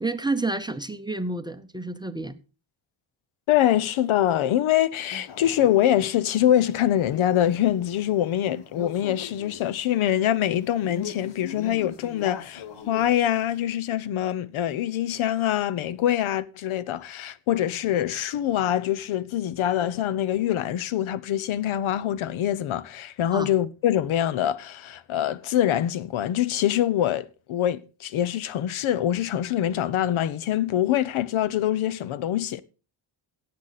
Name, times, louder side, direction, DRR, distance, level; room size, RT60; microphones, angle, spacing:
voice 1, 0.0-2.4 23.3-23.5, right 2 dB, 10° right, 0.6 m, -29 dB
voice 2, 3.5-32.6, left 11 dB, 75° left, 0.8 m, -24 dB
Male speech man speaking, 5.1-13.6, left 7 dB, 60° left, 1.3 m, -41 dB
16.5 x 8.3 x 4.1 m
cardioid pair, 140°, 48 cm